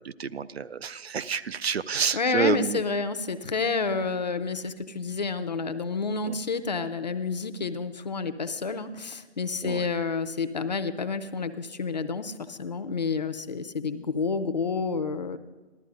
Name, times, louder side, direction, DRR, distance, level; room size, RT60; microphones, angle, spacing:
voice 1, 0.0-2.8 6.2-6.4 9.6-9.9, right 6 dB, 65° right, 15 dB, 0.6 m, -29 dB
voice 2, 2.1-15.4, left 4 dB, 40° left, 10 dB, 0.6 m, -29 dB
14.5 x 13.0 x 3.8 m, 1.2 s
figure-of-eight pair, 155°, 34 cm